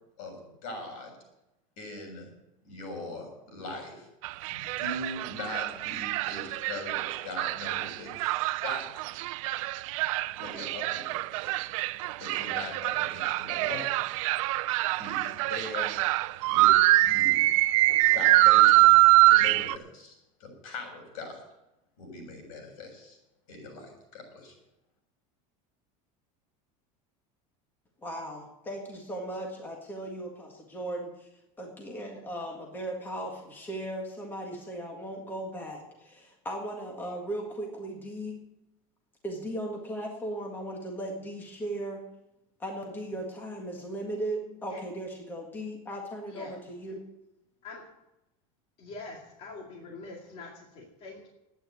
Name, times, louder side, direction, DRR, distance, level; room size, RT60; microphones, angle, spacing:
voice 1, 0.2-1.1 1.8-2.3 2.6-4.1 4.5-9.2 10.4-11.4 12.2-13.9 14.9-16.0 16.4-17.5 18.0-21.4 22.0-23.2 23.5-24.5, left 2 dB, 80° left, 2 dB, 7.1 m, -41 dB
sound 1, 4.2-19.8, right 19 dB, 75° right, 0.5 m, -24 dB
voice 2, 28.0-31.3 31.6-38.4 39.2-42.0 42.6-47.0, right 1 dB, 10° left, 0 dB, 1.7 m, -37 dB
voice 3, 48.8-51.3, left 3 dB, 35° left, -1 dB, 2.3 m, -44 dB
11.5 x 9.3 x 9.3 m, 0.91 s
cardioid pair, 170°, 17 cm